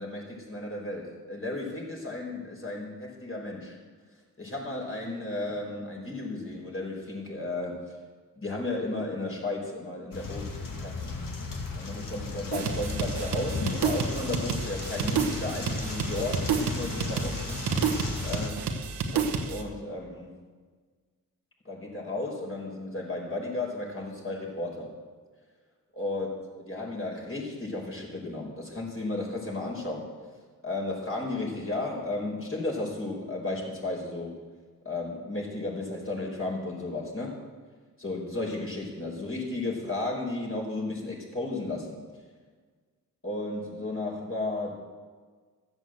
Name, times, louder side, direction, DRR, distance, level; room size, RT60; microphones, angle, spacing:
voice 1, 0.0-3.8 4.4-7.8 8.3-11.1 11.7-17.6 18.2-18.6 19.1-20.4 21.6-24.9 25.9-26.3 26.6-30.1 30.6-34.3 34.8-37.4 38.0-42.0 43.2-44.7, left 2 dB, 35° left, -1 dB, 5.1 m, -34 dB
sound 1, 10.1-18.5, left 3 dB, 55° left, 2.2 m, -35 dB
sound 2, 12.5-19.6, right 5 dB, 90° right, 1.2 m, -30 dB
13.5 x 8.0 x 7.8 m, 1.5 s
cardioid pair, 55°, 39 cm